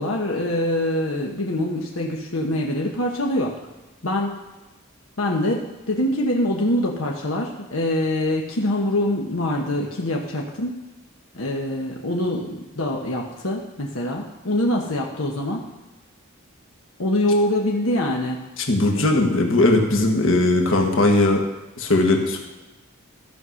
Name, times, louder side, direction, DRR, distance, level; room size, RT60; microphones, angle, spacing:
voice 1, 0.0-3.6 4.0-4.3 5.2-10.7 11.3-15.6 17.0-18.5, left 1 dB, 85° left, -1 dB, 1.3 m, -24 dB
voice 2, 18.7-21.4 21.8-22.4, left 2 dB, 65° left, 2 dB, 1.7 m, -18 dB
14.0 x 5.5 x 6.4 m, 1.1 s
head